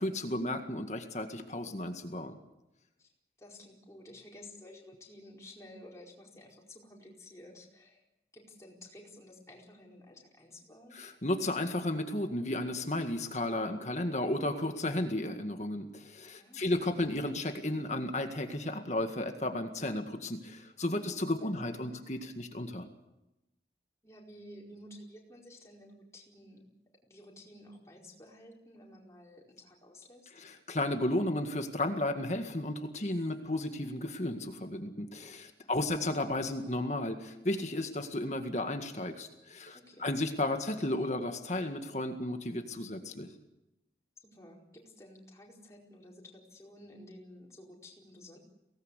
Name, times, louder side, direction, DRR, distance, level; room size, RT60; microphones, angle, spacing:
voice 1, 0.0-2.4 10.9-22.9 30.4-43.3, left 1 dB, 40° left, 6 dB, 1.9 m, -33 dB
voice 2, 3.4-8.0 8.3-11.0 16.4-16.8 21.3-21.5 21.8-21.9 24.0-26.7 27.0-30.3 33.0-33.2 35.6-35.9 39.7-40.1 44.2-48.4, left 1 dB, 15° left, -2 dB, 4.7 m, -53 dB
24.0 x 18.5 x 8.3 m, 0.95 s
head